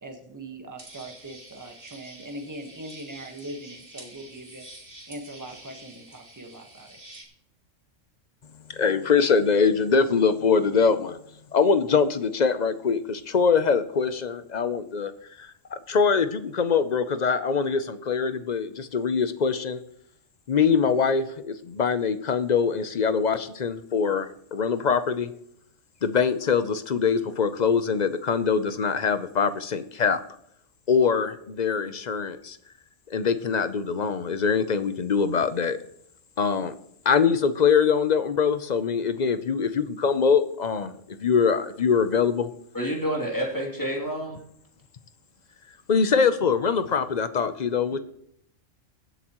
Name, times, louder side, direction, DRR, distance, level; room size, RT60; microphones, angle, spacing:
voice 1, 0.0-4.6 5.1-7.0, right 1 dB, 15° right, 3 dB, 1.4 m, -41 dB
sound 1, 0.8-7.2, right 1 dB, 45° right, 2.6 m, -47 dB
voice 2, 8.7-11.2 11.5-15.1 15.4-19.8 20.5-25.3 26.0-30.2 30.9-32.6 33.1-35.8 36.4-36.7 37.0-42.5 45.9-48.0, left 6 dB, 45° left, 11 dB, 0.6 m, -23 dB
voice 3, 42.7-44.4, equal, 15° left, -2 dB, 2.8 m, -28 dB
23.0 x 8.0 x 3.0 m, 0.71 s
omnidirectional pair, 1.3 m